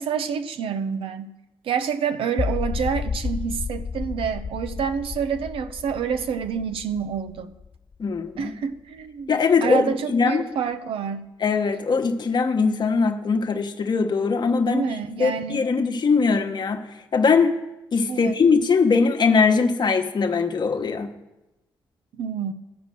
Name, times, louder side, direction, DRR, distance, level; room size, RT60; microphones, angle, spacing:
voice 1, 0.0-1.3 1.6-7.5 8.4-9.3 9.6-11.3 14.7-15.7 18.1-18.4 22.1-22.5, right 7 dB, 75° right, 10 dB, 0.7 m, -28 dB
sound 1, 2.4-8.5, left 5 dB, 35° left, 0.4 m, -32 dB
voice 2, 8.0-8.5 9.3-10.4 11.4-14.8 15.2-16.8 17.1-17.5 17.9-21.1, left 5 dB, 50° left, 4 dB, 1.2 m, -21 dB
12.5 x 5.2 x 7.6 m, 0.97 s
supercardioid pair, 55°, 9 cm